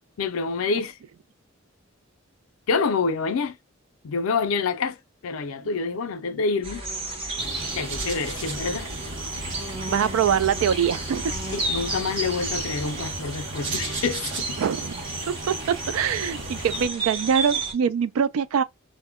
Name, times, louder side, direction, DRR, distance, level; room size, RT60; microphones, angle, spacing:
voice 1, 0.2-1.0 2.7-3.6 4.0-5.0 5.2-6.8 7.7-8.9 11.5-14.6, left 4 dB, 75° left, 0.4 m, -27 dB
sound 1, 6.6-17.7, right 2 dB, 25° right, 0.7 m, -33 dB
sound 2, 7.4-16.9, right 2 dB, 60° right, 0.8 m, -35 dB
voice 2, 9.9-11.3 12.9-13.0 14.6-14.9 15.3-18.6, right 7 dB, 80° right, 0.3 m, -24 dB
2.1 x 2.0 x 3.4 m
head